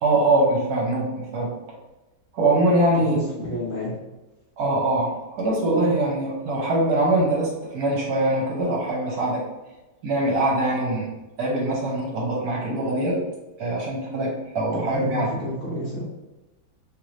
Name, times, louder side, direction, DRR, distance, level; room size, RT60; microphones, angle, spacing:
voice 1, 0.0-1.5 2.3-3.2 4.6-9.4 10.0-11.1 11.4-13.2 13.6-15.3, right 2 dB, 70° right, -3 dB, 1.2 m, -23 dB
voice 2, 2.9-3.9 14.7-16.1, left 1 dB, 60° left, -7 dB, 1.2 m, -30 dB
3.0 x 3.0 x 2.5 m, 1.1 s
omnidirectional pair, 1.8 m